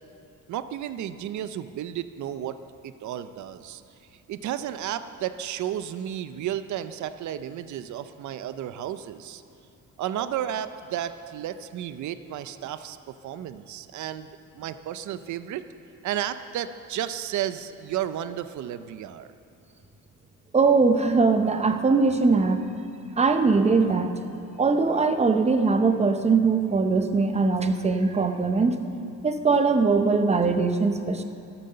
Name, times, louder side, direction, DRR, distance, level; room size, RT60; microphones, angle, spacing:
voice 1, 0.5-2.6 2.8-3.8 4.3-9.4 10.0-15.6 16.0-19.3, right 11 dB, 60° right, 12 dB, 0.6 m, -33 dB
voice 2, 20.5-22.6 23.2-24.1 24.6-28.8 29.2-31.2, right 4 dB, 20° right, 7 dB, 0.7 m, -21 dB
12.0 x 11.5 x 6.8 m, 2.6 s
cardioid pair, 150°, 33 cm